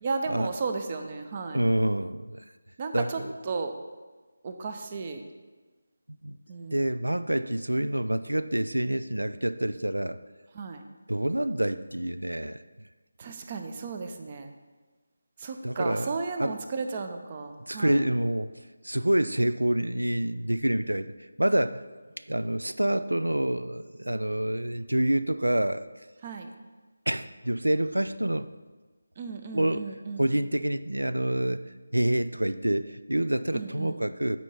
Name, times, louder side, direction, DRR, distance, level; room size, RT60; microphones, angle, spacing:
voice 1, 0.0-1.6 2.8-3.7 4.4-5.2 6.5-6.8 10.5-10.8 13.2-14.5 15.4-18.1 22.6-22.8 26.2-26.5 29.2-30.3 33.5-34.1, right 4 dB, 30° right, 6 dB, 0.7 m, -34 dB
voice 2, 1.5-2.4 2.9-3.3 6.1-6.4 6.7-10.2 11.1-12.6 15.6-16.1 16.4-16.5 17.7-18.5 18.8-21.8 22.2-25.9 27.1-28.5 29.5-29.8 30.2-34.4, right 1 dB, 90° right, 13 dB, 0.4 m, -27 dB
8.9 x 4.6 x 5.5 m, 1.3 s
figure-of-eight pair, 160°, 0 cm